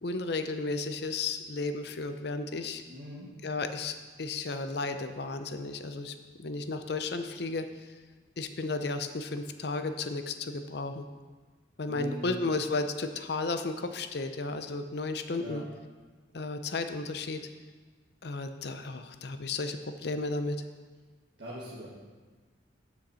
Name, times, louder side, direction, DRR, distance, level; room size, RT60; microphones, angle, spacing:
voice 1, 0.0-2.8 3.4-7.9 8.4-11.1 11.8-15.6 16.3-17.4 18.2-20.6, left 3 dB, 55° left, 8 dB, 0.6 m, -33 dB
voice 2, 2.9-3.3 11.9-12.3 15.4-15.6 21.4-21.9, equal, 60° right, -7 dB, 1.6 m, -41 dB
7.0 x 6.4 x 6.3 m, 1.4 s
head